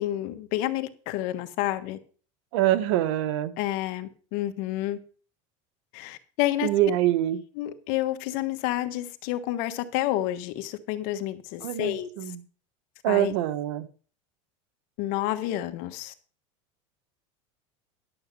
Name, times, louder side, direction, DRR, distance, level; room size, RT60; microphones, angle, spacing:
voice 1, 0.0-2.0 3.6-5.0 5.9-6.7 7.6-12.1 13.1-13.3 15.0-16.1, left 14 dB, 60° left, 1.4 m, -29 dB
voice 2, 2.5-3.5 6.6-7.4 11.6-12.4 13.0-13.9, right 12 dB, 75° right, 1.4 m, -24 dB
11.5 x 7.2 x 5.4 m
supercardioid pair, 130°, 16 cm